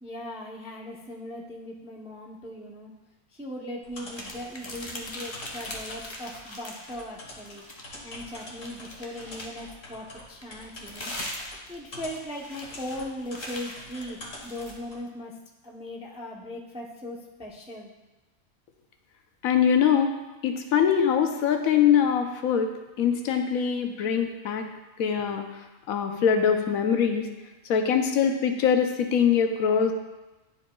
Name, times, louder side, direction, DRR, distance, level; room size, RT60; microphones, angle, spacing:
voice 1, 0.0-2.9 3.3-7.6 8.0-11.1 11.7-15.4 15.6-17.9, left 1 dB, 10° right, -2 dB, 0.3 m, -39 dB
sound 1, 3.8-15.0, left 1 dB, 65° left, 1.8 m, -45 dB
sound 2, 4.1-7.0 7.3-9.7 10.4-14.8, left 1 dB, 25° left, 0.7 m, -41 dB
voice 2, 19.4-20.1 20.4-24.7 25.0-25.6 25.9-27.3 27.6-29.9, left 7 dB, 90° left, 5 dB, 1.1 m, -23 dB
11.0 x 4.8 x 2.3 m, 1.1 s
omnidirectional pair, 1.4 m